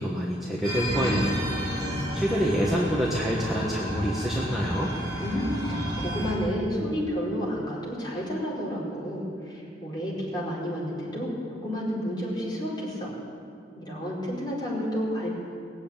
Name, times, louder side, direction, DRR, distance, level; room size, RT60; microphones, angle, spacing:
voice 1, 0.0-1.5 2.1-4.9, equal, ahead, -5 dB, 1.4 m, -27 dB
sound 1, 0.6-6.4, equal, 25° right, 4.0 m, -31 dB
voice 2, 5.2-13.1 13.7-15.3, equal, 25° left, -6 dB, 4.7 m, -31 dB
20.5 x 7.8 x 8.9 m, 2.4 s
head